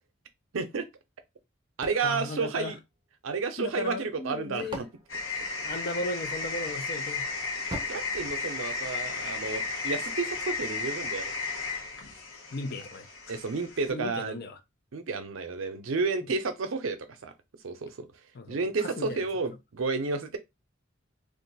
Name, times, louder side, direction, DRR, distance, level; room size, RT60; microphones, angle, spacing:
voice 1, 0.5-0.9 1.8-2.8 3.2-4.9 7.9-11.3 13.3-14.4 14.9-17.3 17.6-18.1 18.5-20.4, right 4 dB, 80° right, 0.5 m, -31 dB
sound 1, 1.8-3.4 4.2-6.2 7.7-9.3, right 2 dB, 25° right, 0.7 m, -44 dB
voice 2, 2.0-2.8 3.6-4.8 5.3-7.2 12.5-13.1 13.9-14.6 18.3-19.2, left 2 dB, 50° left, 0.5 m, -36 dB
sound 2, 5.1-13.9, left 4 dB, 85° left, 0.9 m, -34 dB
2.5 x 2.3 x 4.0 m
head